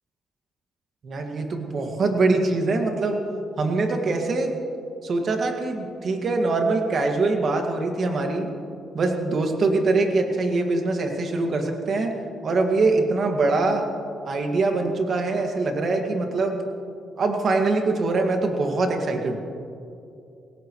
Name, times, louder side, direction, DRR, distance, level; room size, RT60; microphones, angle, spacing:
voice 1, 1.0-3.2 3.6-4.6 5.0-8.5 8.9-12.1 12.4-13.9 14.3-16.7 17.2-19.4, right 3 dB, 50° right, 3 dB, 2.0 m, -23 dB
19.5 x 17.5 x 3.2 m, 2.6 s
cardioid pair, 90°, 0 cm